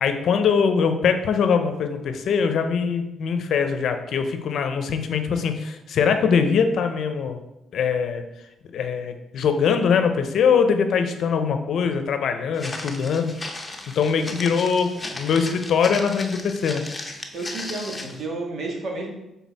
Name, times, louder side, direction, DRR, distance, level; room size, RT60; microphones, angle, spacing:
voice 1, 0.0-7.4 7.7-8.2 8.7-13.3 13.9-16.8, left 6 dB, 65° left, 7 dB, 0.6 m, -22 dB
Walk footsteps, 12.5-18.2, left 2 dB, 20° left, 0.8 m, -36 dB
voice 2, 17.3-19.1, right 2 dB, 60° right, 0 dB, 1.6 m, -31 dB
6.2 x 4.0 x 4.1 m, 0.92 s
cardioid pair, 90°, 0 cm